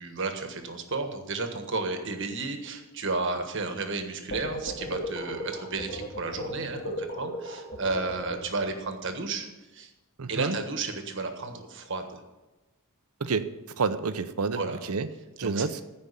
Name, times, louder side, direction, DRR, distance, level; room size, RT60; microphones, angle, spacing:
voice 1, 0.0-9.5 9.7-9.9 10.3-12.2 14.5-14.8 15.4-15.6, right 3 dB, 55° right, 6 dB, 1.4 m, -32 dB
sound 1, 4.3-8.7, equal, 50° left, 1.8 m, -36 dB
voice 2, 10.2-10.6 13.2-13.5 13.8-15.1 15.4-15.8, right 4 dB, 85° right, 12 dB, 0.7 m, -29 dB
15.0 x 5.2 x 6.7 m, 1.1 s
head